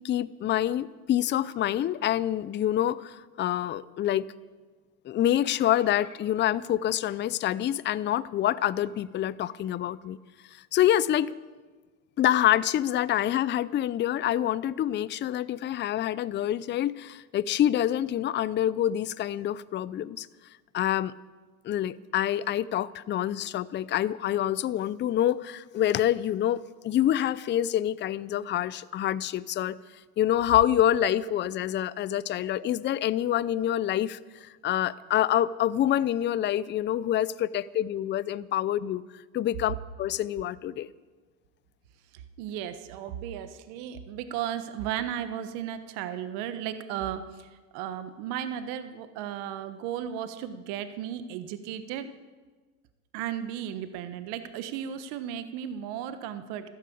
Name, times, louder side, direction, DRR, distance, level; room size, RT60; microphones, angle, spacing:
voice 1, 0.0-4.3 5.1-10.2 10.7-11.3 12.2-20.3 20.7-21.1 21.6-29.8 30.2-34.2 34.6-39.0 39.3-40.9, left 12 dB, 25° left, 18 dB, 0.5 m, -26 dB
voice 2, 42.1-52.1 53.1-56.7, right 10 dB, 65° right, 10 dB, 1.3 m, -35 dB
13.0 x 12.5 x 8.6 m, 1.3 s
supercardioid pair, 105°, 42 cm